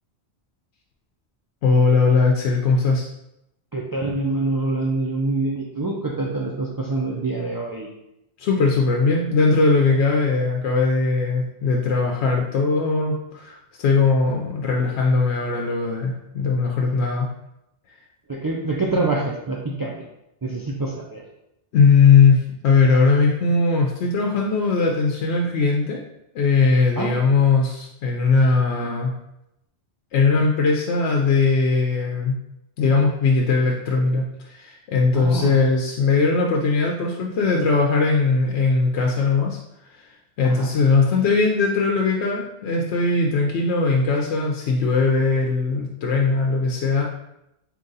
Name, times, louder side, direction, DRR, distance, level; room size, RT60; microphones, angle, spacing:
voice 1, 1.6-3.1 8.4-17.3 21.7-26.0 26.3-29.1 30.1-32.4 32.8-39.6 39.9-40.1 40.4-47.0, left 4 dB, 85° left, -1 dB, 0.9 m, -19 dB
voice 2, 3.7-7.9 18.3-20.0 20.4-21.2 27.0-27.1 35.1-35.6 40.4-40.7, right 2 dB, 35° right, -3 dB, 0.3 m, -25 dB
3.8 x 2.9 x 3.9 m, 0.85 s
omnidirectional pair, 1.1 m